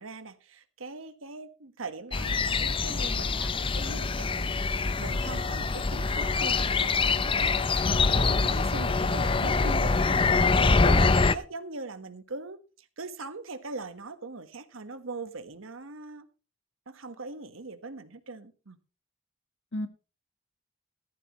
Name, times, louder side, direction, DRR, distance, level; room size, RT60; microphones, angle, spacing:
voice 1, 0.0-4.6 5.0-7.8 8.0-10.5 10.8-16.3 16.9-18.8, right 3 dB, 85° right, 1.4 m, -41 dB
sound 1, 2.1-11.4, left 4 dB, 25° left, 0.5 m, -25 dB
voice 2, 7.7-8.3 19.7-19.9, left 1 dB, 60° left, 1.5 m, -35 dB
15.5 x 13.0 x 3.1 m
head